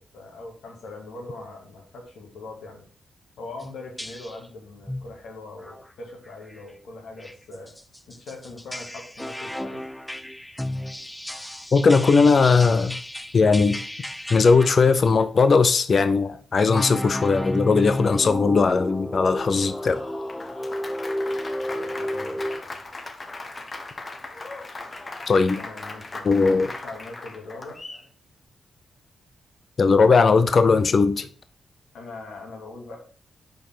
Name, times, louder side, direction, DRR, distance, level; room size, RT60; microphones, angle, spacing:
voice 1, 0.1-2.9 3.4-7.7 8.1-9.8 21.7-22.6 25.5-27.8 31.9-33.0, left 2 dB, 80° left, 2.3 m, -41 dB
sound 1, 3.6-3.7 4.0-4.5 4.9-5.1 5.6-5.8 6.3-6.6 7.2-15.2 16.6-22.6, left 1 dB, 10° left, 0.5 m, -32 dB
voice 2, 11.7-13.0 13.3-13.8 14.3-20.0 25.3-25.6 26.2-26.7 29.8-31.3, left 4 dB, 55° left, 0.6 m, -18 dB
Applause, 19.3-28.1, left 2 dB, 35° left, 1.1 m, -38 dB
5.4 x 4.6 x 5.6 m
cardioid pair, 60°, 0 cm